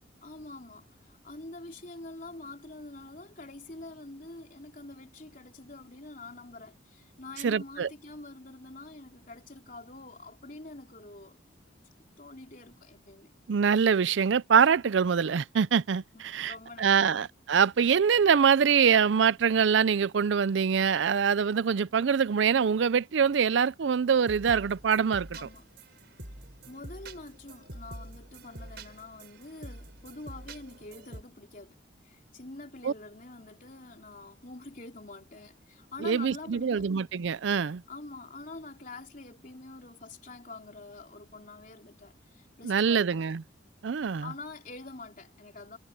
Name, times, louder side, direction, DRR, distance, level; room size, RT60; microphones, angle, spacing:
voice 1, 0.2-11.4 12.2-13.3 16.1-17.3 25.4-25.7 26.7-31.8 32.0-36.9 37.9-43.2 44.2-45.8, left 2 dB, 45° left, 3.7 m, -46 dB
voice 2, 7.4-7.9 13.5-25.3 32.8-32.9 36.0-37.8 42.6-43.4 43.8-44.3, right 6 dB, 75° right, 0.5 m, -24 dB
sound 1, 24.1-31.2, right 1 dB, 60° right, 5.0 m, -46 dB
head